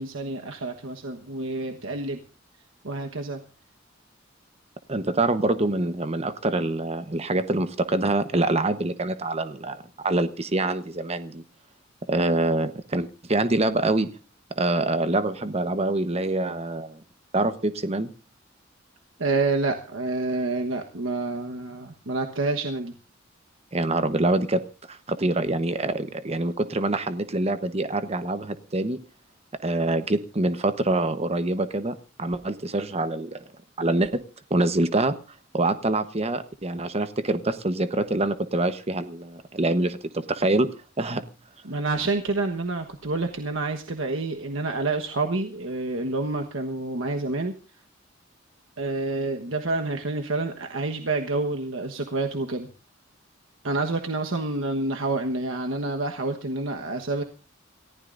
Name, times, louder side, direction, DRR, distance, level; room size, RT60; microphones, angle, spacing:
voice 1, 0.0-2.2 2.8-3.4 19.2-22.9 41.6-47.5 48.8-52.7 53.6-57.2, right 3 dB, 85° right, 4 dB, 1.3 m, -28 dB
voice 2, 4.9-11.4 12.1-14.1 14.5-17.0 17.3-18.1 23.7-24.6 24.9-29.0 29.6-33.4 33.8-34.2 34.5-35.1 35.5-40.7 41.0-41.2, right 2 dB, 35° right, 11 dB, 1.1 m, -25 dB
28.0 x 15.0 x 2.6 m, 0.33 s
head